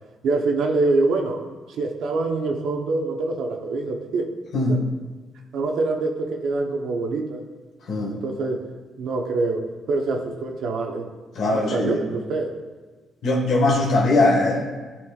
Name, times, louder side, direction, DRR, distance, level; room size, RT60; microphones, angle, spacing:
voice 1, 0.2-1.4 1.8-4.3 4.7-4.8 5.5-7.4 8.1-8.7 9.0-11.1 11.5-12.5, right 3 dB, 75° right, 3 dB, 0.8 m, -25 dB
voice 2, 11.3-12.0 13.2-14.6, left 2 dB, 70° left, -3 dB, 1.6 m, -20 dB
11.0 x 4.4 x 2.4 m, 1.3 s
cardioid pair, 90°, 0 cm